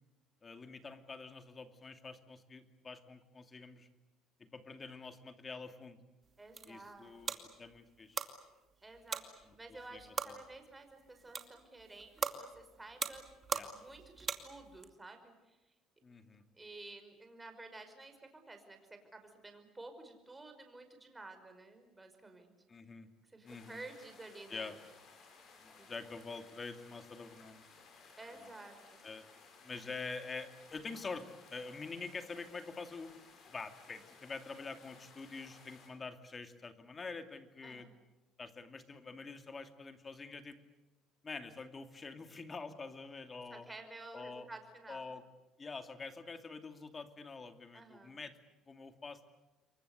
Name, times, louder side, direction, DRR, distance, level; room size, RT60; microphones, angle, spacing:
voice 1, 0.4-3.9 4.5-6.0 6.7-8.3 9.9-10.4 13.5-13.7 16.0-16.4 22.7-23.1 23.4-23.8 24.5-24.8 25.6-27.7 29.0-29.2 29.6-33.1 33.5-37.9 38.4-40.6 41.2-43.6 44.1-44.5 44.9-45.2 45.6-48.3 48.7-49.3, left 4 dB, 25° left, 8 dB, 2.5 m, -46 dB
sound 1, 6.2-14.9, right 5 dB, 30° right, 2.5 m, -42 dB
voice 2, 6.4-7.5 8.8-13.2 13.6-15.6 16.5-22.5 23.2-24.8 25.8-25.9 28.2-29.0 29.7-30.0 37.6-37.9 43.5-45.1 47.7-48.2, right 2 dB, 10° right, 6 dB, 5.3 m, -52 dB
sound 2, 23.5-35.9, left 4 dB, 50° left, 7.7 m, -59 dB
28.5 x 23.5 x 8.2 m, 1.1 s
cardioid pair, 130°, 0 cm